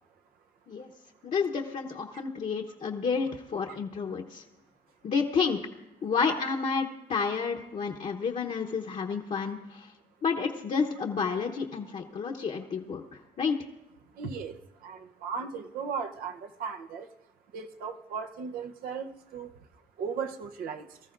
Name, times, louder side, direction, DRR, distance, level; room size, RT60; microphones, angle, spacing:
voice 1, 1.2-4.4 5.0-5.6 6.0-9.9 10.2-13.0 13.4-13.6, left 5 dB, 50° left, 1 dB, 1.0 m, -30 dB
voice 2, 14.2-14.6 14.8-17.1 17.5-19.5 20.0-20.9, right 6 dB, 85° right, 6 dB, 0.9 m, -36 dB
24.0 x 14.0 x 2.6 m, 0.94 s
cardioid pair, 95°, 15 cm